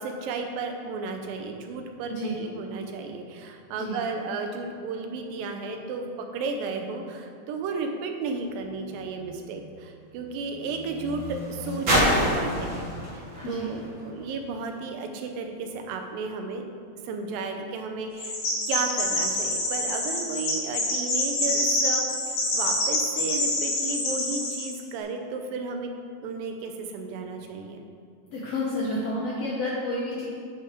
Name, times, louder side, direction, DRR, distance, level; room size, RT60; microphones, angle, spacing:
voice 1, 0.0-16.6 17.0-18.4 18.7-25.9 26.2-27.9, right 4 dB, 80° right, 4 dB, 2.4 m, -33 dB
sound 1, 8.3-14.8 15.7-15.8, equal, 35° right, 2.5 m, -30 dB
voice 2, 13.4-13.8 28.3-30.3, left 1 dB, 80° left, -4 dB, 1.4 m, -30 dB
Chirp tweet, 18.2-24.7, left 1 dB, 65° left, 3.2 m, -26 dB
8.4 x 5.6 x 5.0 m, 2.3 s
omnidirectional pair, 4.2 m